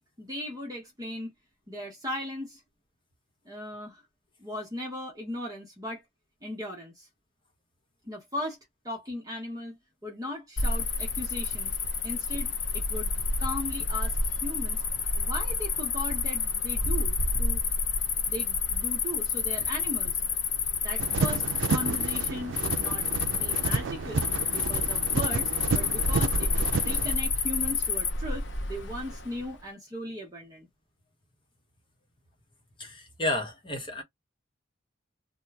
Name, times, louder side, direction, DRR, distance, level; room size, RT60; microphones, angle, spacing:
voice 1, 0.2-1.3 1.7-2.6 3.4-4.0 4.4-6.0 6.4-7.1 8.0-8.6 8.8-9.8 10.0-11.8 12.0-13.1 13.4-14.8 15.1-17.6 18.3-20.2 20.8-21.4 21.7-30.7, left 1 dB, 20° right, 1.0 m, -38 dB
Cricket, 10.6-29.5, left 4 dB, 70° left, 0.8 m, -29 dB
sound 1, 21.0-27.1, right 4 dB, 80° right, 0.5 m, -31 dB
voice 2, 32.8-34.0, left 1 dB, 25° left, 1.1 m, -31 dB
2.9 x 2.2 x 3.4 m
head